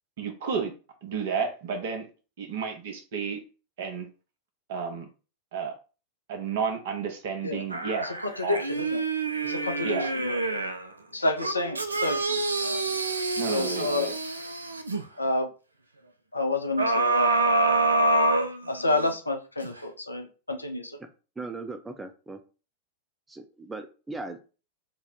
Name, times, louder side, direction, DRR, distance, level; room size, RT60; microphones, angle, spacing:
voice 1, 0.2-0.7 1.0-2.1 2.4-3.4 3.8-4.1 4.7-5.1 5.5-5.7 6.3-8.1 8.4-8.6 9.8-10.1 13.4-14.1, right 6 dB, 55° right, 5 dB, 0.8 m, -31 dB
sound 1, 7.7-10.9 11.4-15.0 16.8-19.1 19.6-19.7, right 2 dB, 80° right, 0.3 m, -26 dB
voice 2, 8.0-9.0 9.4-10.4 11.1-12.8 13.5-14.1 15.2-15.5 16.3-17.3 18.7-21.0, left 2 dB, 80° left, 5 dB, 0.5 m, -29 dB
voice 3, 21.4-22.4 23.3-24.4, right 3 dB, 10° right, 8 dB, 0.5 m, -38 dB
2.7 x 2.1 x 3.9 m, 0.34 s
figure-of-eight pair, 90°, 0 cm